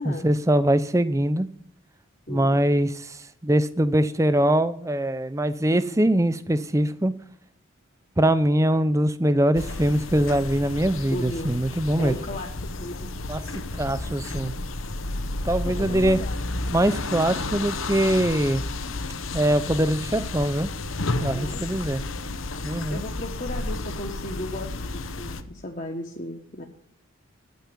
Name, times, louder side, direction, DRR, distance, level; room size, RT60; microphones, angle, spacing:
voice 1, 0.0-1.5 2.3-7.1 8.2-12.1 13.3-13.4 13.7-14.5 15.4-16.2 16.7-18.6 19.3-20.7 21.2-22.0 22.6-23.0, right 1 dB, 15° right, 14 dB, 0.6 m, -22 dB
voice 2, 2.3-2.6 5.7-6.1 11.1-11.6 12.0-12.5 12.8-13.1 15.6-16.4 21.3-21.8 22.9-26.6, left 1 dB, 40° left, 1 dB, 1.4 m, -35 dB
sound 1, 9.5-25.4, left 2 dB, 75° left, 1.0 m, -32 dB
9.5 x 9.3 x 8.6 m, 0.67 s
head